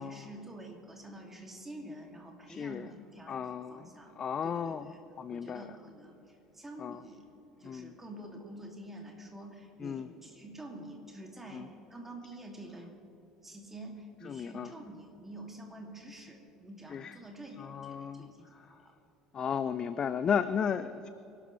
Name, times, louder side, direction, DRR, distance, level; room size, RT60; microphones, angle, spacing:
voice 1, 0.0-4.1 4.4-5.0 5.3-7.3 7.6-13.0 13.4-18.9, right 1 dB, 15° right, 1 dB, 2.7 m, -48 dB
voice 2, 2.5-2.9 3.3-3.9 4.2-5.7 6.8-7.0 7.6-7.9 9.8-10.1 11.5-11.7 14.2-14.7 16.9-17.2 17.6-18.7 19.3-21.1, left 7 dB, 35° left, 13 dB, 0.4 m, -34 dB
24.0 x 12.5 x 3.3 m, 3.0 s
figure-of-eight pair, 65°, 2 cm